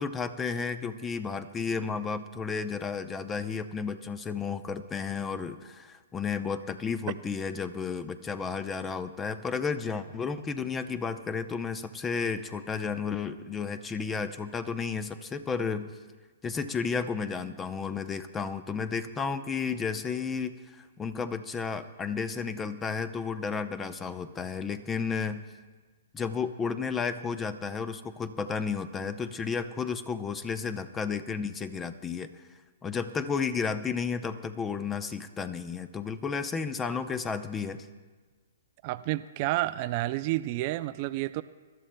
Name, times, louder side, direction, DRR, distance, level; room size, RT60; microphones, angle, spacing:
voice 1, 0.0-15.9 16.4-25.4 26.1-32.3 32.8-37.9, left 5 dB, 15° left, 12 dB, 0.6 m, -32 dB
voice 2, 38.8-41.4, right 17 dB, 40° right, 13 dB, 0.3 m, -30 dB
26.0 x 12.5 x 2.2 m, 1.4 s
hypercardioid pair, 135°, 0 cm